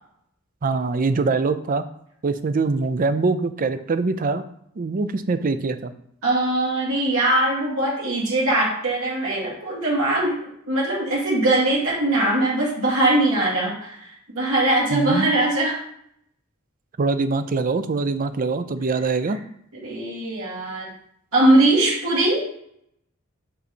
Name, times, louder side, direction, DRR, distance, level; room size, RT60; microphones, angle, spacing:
voice 1, 0.6-1.9 2.2-4.4 4.8-5.9 14.9-15.3 17.0-19.4, right 3 dB, 40° right, 11 dB, 0.4 m, -23 dB
voice 2, 6.2-15.8 19.8-20.9 21.3-22.4, right 1 dB, 80° right, -5 dB, 2.4 m, -21 dB
5.5 x 5.2 x 4.3 m, 0.71 s
head